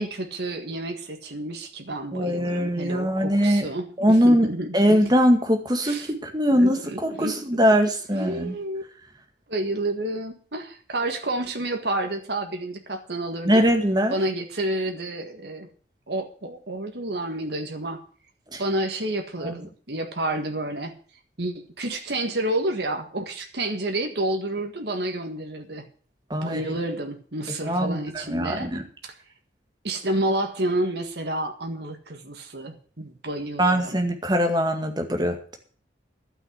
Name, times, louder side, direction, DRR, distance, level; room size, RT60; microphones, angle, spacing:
voice 1, 0.0-5.0 5.8-6.1 6.5-7.4 8.1-8.8 9.5-13.7 14.1-15.7 16.1-18.0 18.6-20.9 21.4-25.8 26.3-28.7 29.0-29.1 29.8-34.0, right 1 dB, 65° right, 4 dB, 1.7 m, -30 dB
voice 2, 2.1-3.7 4.0-8.6 13.5-14.2 18.5-18.6 19.4-19.7 26.3-26.7 27.6-28.8 33.6-35.6, equal, 20° right, 4 dB, 1.9 m, -22 dB
12.0 x 6.2 x 9.4 m, 0.43 s
head